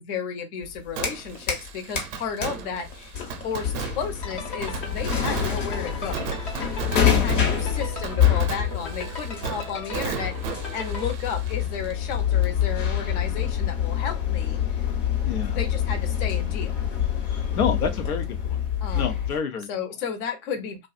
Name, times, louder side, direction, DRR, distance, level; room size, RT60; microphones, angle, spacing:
voice 1, 0.0-3.2 3.4-6.3 7.0-14.8 15.5-16.8 18.8-19.2 19.7-20.9, left 6 dB, 40° left, 0.8 m, -33 dB
sound 1, 0.6-1.7 2.0-19.4, left 9 dB, 60° left, 1.1 m, -26 dB
Fireworks, 1.0-12.6 12.9-13.0 19.6-19.7, right 7 dB, 35° right, 0.6 m, -36 dB
sound 2, 4.2-11.1, left 1 dB, 20° left, 0.4 m, -38 dB
voice 2, 15.2-15.6 17.3-18.6 18.9-19.7, left 6 dB, 85° left, 0.7 m, -28 dB
2.5 x 2.3 x 2.4 m
hypercardioid pair, 120°, 44 cm